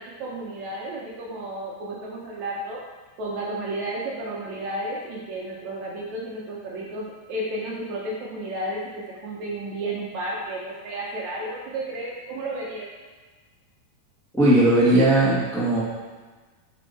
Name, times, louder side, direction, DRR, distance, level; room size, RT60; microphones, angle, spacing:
voice 1, 0.0-2.8 3.2-12.9, right 1 dB, 70° right, -3 dB, 1.9 m, -32 dB
voice 2, 14.3-15.8, right 1 dB, 5° left, -8 dB, 0.5 m, -18 dB
7.9 x 5.5 x 4.2 m, 1.3 s
omnidirectional pair, 4.0 m